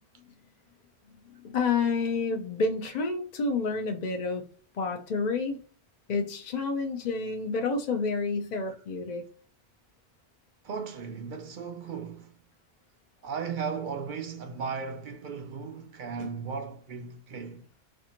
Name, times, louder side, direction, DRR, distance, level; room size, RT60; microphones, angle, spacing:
voice 1, 1.4-4.4 4.7-5.6 6.1-9.2 16.2-16.3, left 4 dB, 55° left, 0.5 m, -29 dB
voice 2, 10.6-12.3 13.2-17.7, right 5 dB, 60° right, 0.6 m, -36 dB
4.3 x 2.5 x 2.8 m
omnidirectional pair, 1.1 m